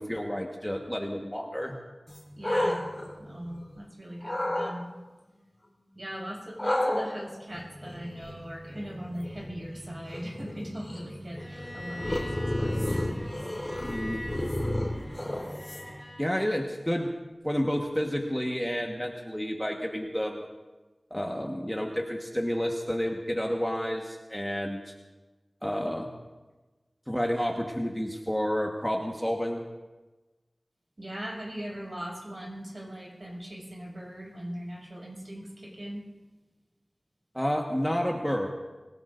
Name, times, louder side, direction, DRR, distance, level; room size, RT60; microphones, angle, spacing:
voice 1, 0.0-1.7 13.8-14.2 16.2-17.1 17.4-20.5 21.1-24.8 25.6-26.1 27.1-29.6 37.3-38.5, equal, 5° left, 0 dB, 1.4 m, -30 dB
sound 1, 2.1-3.8 4.2-4.7 6.6-16.1, left 1 dB, 25° left, 4.0 m, -32 dB
voice 2, 2.4-2.8 3.2-4.9 5.9-13.2 31.0-36.0, equal, 45° right, -3 dB, 6.1 m, -40 dB
Bowed string instrument, 11.4-16.3, left 1 dB, 15° right, 3.1 m, -43 dB
25.0 x 17.5 x 2.6 m, 1.2 s
wide cardioid pair, 55°, 0 cm